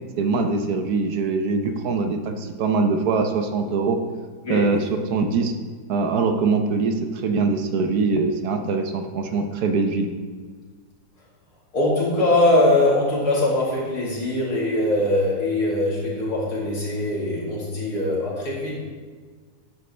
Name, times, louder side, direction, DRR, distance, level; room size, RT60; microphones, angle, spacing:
voice 1, 0.2-4.0 4.5-5.5 5.9-10.1, right 4 dB, 70° right, 6 dB, 1.3 m, -23 dB
voice 2, 11.7-18.8, left 1 dB, 65° left, -5 dB, 3.3 m, -22 dB
12.0 x 9.5 x 3.3 m, 1.5 s
omnidirectional pair, 1.8 m